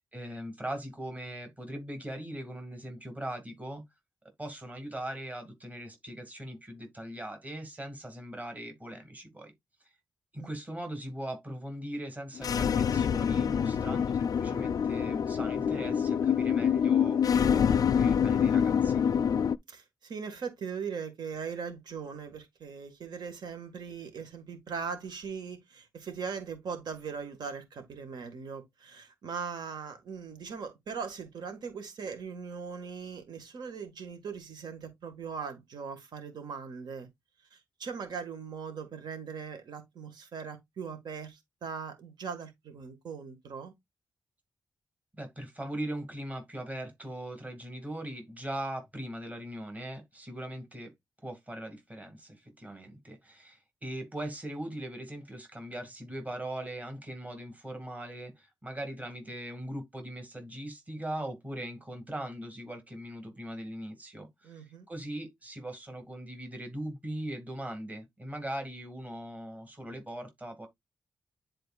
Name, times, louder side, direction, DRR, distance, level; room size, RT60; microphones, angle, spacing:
voice 1, 0.1-3.8 4.4-9.5 10.3-19.0 45.1-50.9 51.2-70.7, right 1 dB, 20° right, 2.1 m, -40 dB
sound 1, 12.4-19.6, left 7 dB, 55° left, 0.4 m, -26 dB
voice 2, 19.7-37.1 37.5-43.7 64.4-64.9, right 6 dB, 75° right, 1.7 m, -40 dB
10.5 x 4.3 x 2.4 m
wide cardioid pair, 115°, 7 cm